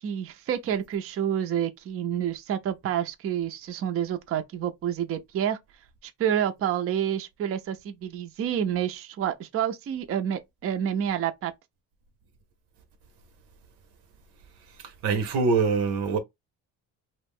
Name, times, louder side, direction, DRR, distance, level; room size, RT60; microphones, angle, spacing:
voice 1, 0.0-5.6 6.0-11.5, right 9 dB, 35° right, 0.4 m, -28 dB
voice 2, 14.7-16.2, right 4 dB, 80° right, 0.7 m, -25 dB
2.4 x 2.0 x 3.5 m
supercardioid pair, 60°, 40 cm